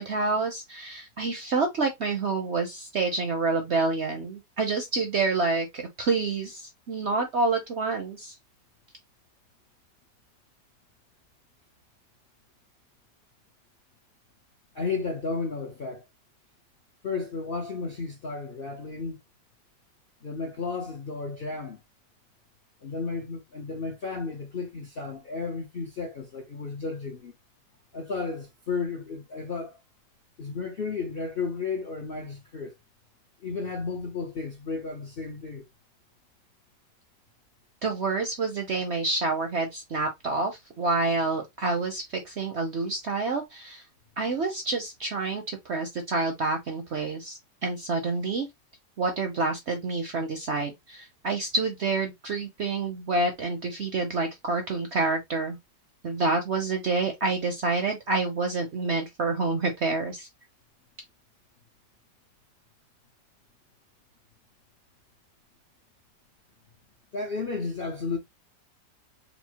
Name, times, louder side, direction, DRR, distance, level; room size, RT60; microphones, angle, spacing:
voice 1, 0.0-8.3 37.8-43.8 44.2-48.5 49.0-55.6 56.0-60.3, right 3 dB, 55° right, 0.7 m, -28 dB
voice 2, 14.7-16.0 17.0-19.2 20.2-21.8 22.8-27.4 27.9-29.8 30.4-32.7 33.4-35.7 67.1-68.2, left 4 dB, 55° left, 0.6 m, -33 dB
4.2 x 2.0 x 4.4 m
omnidirectional pair, 1.9 m